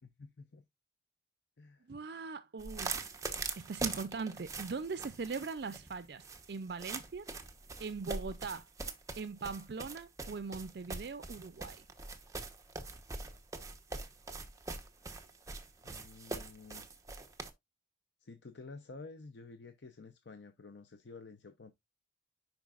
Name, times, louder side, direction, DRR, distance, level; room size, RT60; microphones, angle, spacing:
voice 1, 0.0-0.6 1.6-1.8 15.8-16.9 18.2-21.7, left 3 dB, 80° left, 0.7 m, -51 dB
voice 2, 1.9-3.1 3.6-7.3 7.8-8.7 9.2-11.9, right 4 dB, 60° right, 0.5 m, -40 dB
sound 1, 2.6-17.5, right 3 dB, 20° right, 0.9 m, -42 dB
10.5 x 4.7 x 2.4 m
head